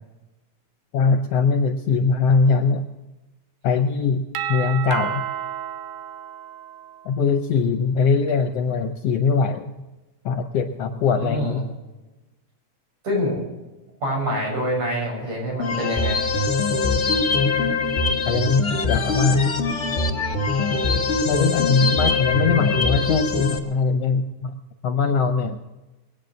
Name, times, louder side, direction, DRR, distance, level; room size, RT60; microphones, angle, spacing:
voice 1, 0.9-2.8 3.6-4.2 4.5-5.2 7.0-9.6 10.2-11.7 18.3-18.6 18.9-19.4 21.2-24.5 24.8-25.6, left 5 dB, 70° left, 7 dB, 1.6 m, -21 dB
Doorbell, 4.3-7.2, right 9 dB, 85° right, 2.4 m, -31 dB
voice 2, 11.1-11.6 13.0-13.4 14.0-16.2, equal, 65° right, -3 dB, 7.9 m, -25 dB
sound 1, 15.6-23.6, left 3 dB, 35° left, 1.2 m, -22 dB
21.5 x 9.4 x 6.5 m, 1.1 s
omnidirectional pair, 3.6 m